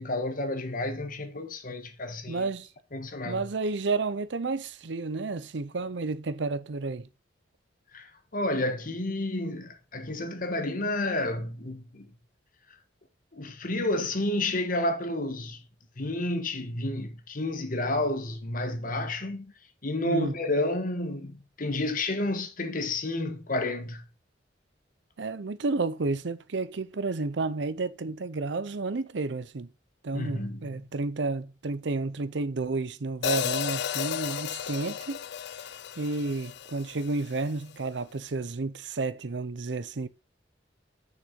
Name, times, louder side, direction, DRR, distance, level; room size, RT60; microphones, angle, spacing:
voice 1, 0.0-2.5 2.9-3.4 7.9-12.1 13.3-15.6 16.0-19.5 19.8-24.0 30.1-30.7, left 2 dB, 50° left, 1.4 m, -30 dB
voice 2, 2.3-2.7 3.2-7.1 20.0-20.4 25.2-29.7 30.0-35.2 36.0-40.1, right 3 dB, 75° right, 0.7 m, -31 dB
Hi-hat, 33.2-37.4, left 9 dB, 65° left, 0.4 m, -33 dB
6.6 x 6.6 x 5.9 m
head